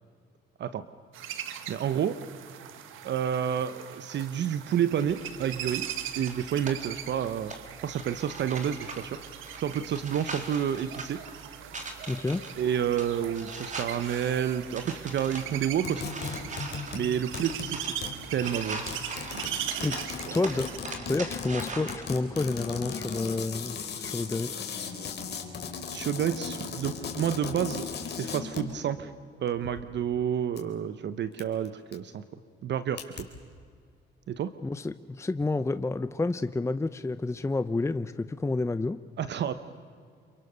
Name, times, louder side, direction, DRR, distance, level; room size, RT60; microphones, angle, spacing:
sound 1, 1.1-20.8, right 10 dB, 85° right, 1.5 m, -40 dB
voice 1, 1.7-2.2 3.0-5.9 6.2-7.5 7.8-9.2 9.6-11.2 12.6-16.1 16.9-17.9 18.3-18.8 19.3-19.9 20.3-20.4 25.9-29.1 29.4-32.2 32.6-33.3 34.3-34.5 39.2-39.5, right 9 dB, 65° right, 12 dB, 0.9 m, -30 dB
sound 2, 5.1-22.1, right 3 dB, 40° right, 3.8 m, -42 dB
voice 2, 12.1-12.4 19.8-20.0 20.3-20.7 21.1-24.6 34.6-39.0, left 3 dB, 15° left, 12 dB, 0.7 m, -29 dB
sound 3, 15.8-17.1 17.3-17.7 18.0-18.3 18.9-28.8 29.5-29.8 30.6-30.7 31.4-31.7 31.9-32.0 33.0-33.2, left 6 dB, 55° left, 3.8 m, -37 dB
27.5 x 24.0 x 6.8 m, 2.2 s
cardioid pair, 90°, 20 cm